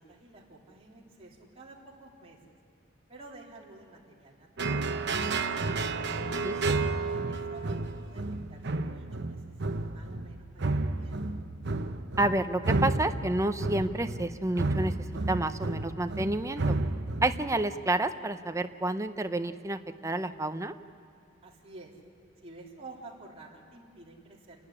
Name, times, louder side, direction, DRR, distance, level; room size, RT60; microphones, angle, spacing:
voice 1, 0.0-2.4 3.1-5.5 6.8-8.2 8.5-11.2 21.4-21.9 22.4-24.7, right 2 dB, 30° right, -3 dB, 3.3 m, -51 dB
sound 1, 4.6-17.7, right 3 dB, 60° right, 0.9 m, -31 dB
voice 2, 6.4-6.7 12.2-14.9 15.3-16.8 17.2-20.7, right 2 dB, 15° right, 9 dB, 0.7 m, -29 dB
29.0 x 11.5 x 9.9 m, 2.3 s
head